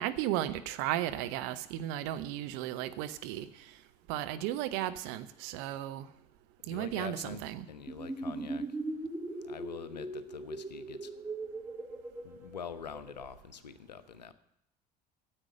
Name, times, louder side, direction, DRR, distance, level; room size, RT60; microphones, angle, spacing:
voice 1, 0.0-3.8 4.1-6.1 6.7-7.7, right 13 dB, 60° right, 11 dB, 0.8 m, -35 dB
voice 2, 6.7-7.4 7.7-8.7 9.4-11.1 12.2-14.3, left 7 dB, 80° left, 14 dB, 0.7 m, -44 dB
sound 1, 7.9-13.2, right 2 dB, 10° right, 1.2 m, -39 dB
10.0 x 8.1 x 8.7 m, 0.78 s
figure-of-eight pair, 60°, 21 cm